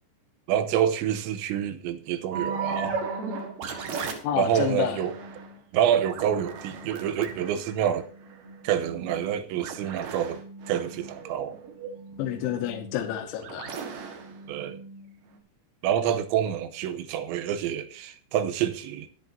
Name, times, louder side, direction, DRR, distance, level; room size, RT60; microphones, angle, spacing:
voice 1, 0.5-3.0 4.4-5.1 5.7-8.1 8.6-11.6 14.5-14.8 15.8-19.1, right 9 dB, 90° right, 3.1 m, -27 dB
sound 1, 2.3-15.4, right 4 dB, 60° right, 2.7 m, -37 dB
voice 2, 4.2-5.0 12.2-13.8, left 11 dB, 90° left, 3.5 m, -29 dB
22.0 x 8.4 x 2.7 m
omnidirectional pair, 5.2 m